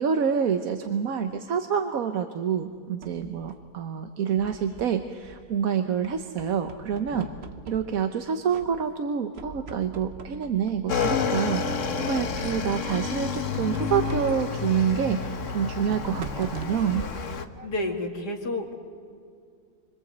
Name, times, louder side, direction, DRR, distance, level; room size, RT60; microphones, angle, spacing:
voice 1, 0.0-7.3 7.7-17.1, right 7 dB, 60° right, 6 dB, 1.4 m, -27 dB
sound 1, 2.5-3.8 4.3-5.6 6.0-8.2 8.5-9.1 9.3-11.3 11.9-13.0 13.7-18.2, right 5 dB, 45° right, 1.2 m, -44 dB
Motorcycle / Engine, 10.9-17.5, left 5 dB, 50° left, 1.5 m, -29 dB
voice 2, 17.6-18.7, left 2 dB, 85° left, 2 dB, 3.0 m, -30 dB
28.0 x 25.5 x 8.0 m, 2.3 s
omnidirectional pair, 1.7 m